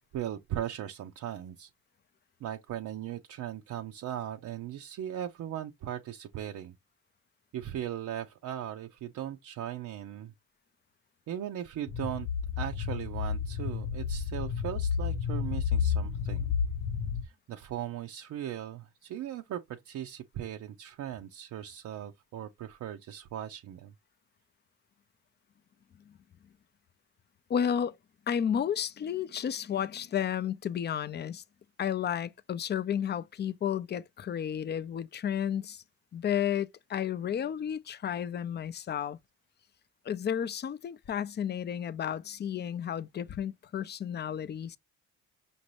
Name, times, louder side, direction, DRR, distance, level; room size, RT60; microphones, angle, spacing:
voice 1, 0.1-1.7 2.4-6.7 7.5-10.3 11.3-12.3 12.6-16.5 17.2-23.9, right 11 dB, 70° right, 0.6 m, -38 dB
sound 1, 11.9-17.2, left 7 dB, 80° left, 0.8 m, -31 dB
voice 2, 27.5-28.0 28.3-31.4 31.8-35.8 36.1-39.2 40.0-44.8, left 9 dB, 35° left, 0.4 m, -32 dB
5.1 x 2.6 x 3.1 m
cardioid pair, 75°, 31 cm